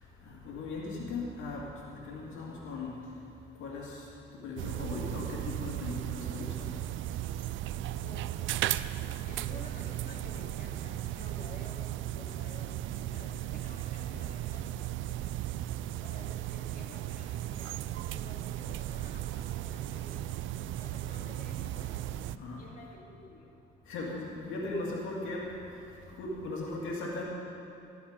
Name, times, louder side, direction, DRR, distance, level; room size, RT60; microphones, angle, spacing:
voice 1, 0.5-1.7 2.1-2.9 3.6-3.9 4.4-6.7 22.3-22.6 23.9-25.5 26.2-27.2, left 3 dB, 85° left, -3 dB, 2.2 m, -37 dB
sound 1, 4.6-22.4, right 13 dB, 75° right, 0.4 m, -36 dB
voice 2, 7.9-8.3 9.2-14.7 16.0-20.3 20.8-22.0 22.6-23.5, left 2 dB, 45° left, -2 dB, 2.5 m, -52 dB
13.5 x 12.5 x 5.1 m, 2.9 s
cardioid pair, 90°, 20 cm